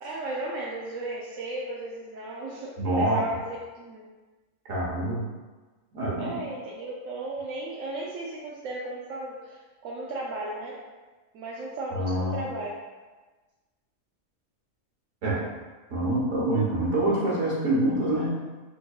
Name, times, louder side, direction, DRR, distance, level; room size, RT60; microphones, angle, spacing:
voice 1, 0.0-3.4 3.7-4.0 6.2-10.8 11.3-12.7, right 2 dB, 85° right, -5 dB, 1.0 m, -35 dB
voice 2, 2.8-3.3 4.6-5.2 5.9-6.4 11.9-12.5 15.2-15.5 15.9-18.3, right 1 dB, 70° right, -5 dB, 1.4 m, -26 dB
3.9 x 3.5 x 2.3 m, 1.3 s
omnidirectional pair, 1.4 m